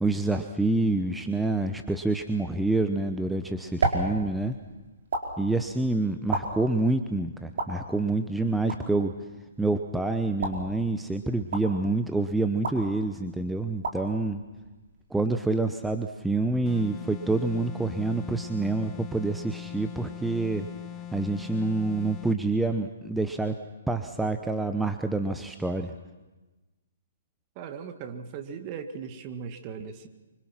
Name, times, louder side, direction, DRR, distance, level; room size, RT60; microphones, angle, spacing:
voice 1, 0.0-4.6 5.4-9.1 9.6-14.4 15.1-20.7 21.1-23.6 23.9-25.9, right 2 dB, 5° right, 7 dB, 0.9 m, -27 dB
sound 1, 3.1-15.3, right 2 dB, 60° right, 4.5 m, -36 dB
sound 2, 16.6-22.4, left 11 dB, 25° left, 1.1 m, -41 dB
voice 2, 27.6-30.1, right 6 dB, 30° right, 7 dB, 1.9 m, -38 dB
25.0 x 25.0 x 6.1 m, 1.1 s
figure-of-eight pair, 125°, 0 cm